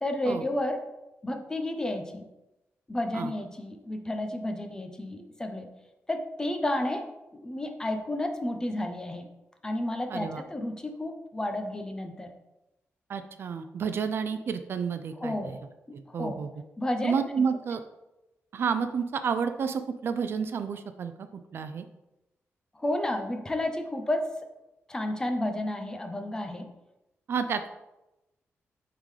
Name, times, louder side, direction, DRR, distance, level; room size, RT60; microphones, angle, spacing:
voice 1, 0.0-0.8 1.2-2.2 2.9-5.7 6.1-9.3 9.6-12.3 15.2-15.6 16.1-16.4 16.8-17.2 22.8-24.3 24.9-26.7, left 1 dB, 15° left, 5 dB, 0.6 m, -31 dB
voice 2, 10.1-10.4 13.1-15.6 15.9-16.5 17.0-17.8 18.5-21.9 27.3-27.7, right 6 dB, 55° right, 9 dB, 0.4 m, -30 dB
8.8 x 3.8 x 3.2 m, 0.95 s
wide cardioid pair, 160°, 5 cm